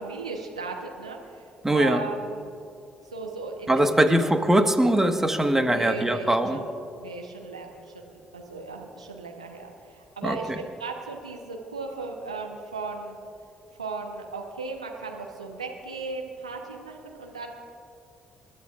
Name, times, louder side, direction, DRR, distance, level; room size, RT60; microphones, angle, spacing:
voice 1, 0.0-2.5 3.1-4.4 5.6-13.2 13.8-17.5, right 3 dB, 90° right, 1 dB, 1.2 m, -37 dB
voice 2, 1.6-2.0 3.7-6.6 10.2-10.4, right 1 dB, 10° right, 6 dB, 1.5 m, -21 dB
29.0 x 12.5 x 2.5 m, 2.6 s
figure-of-eight pair, 45°, 3 cm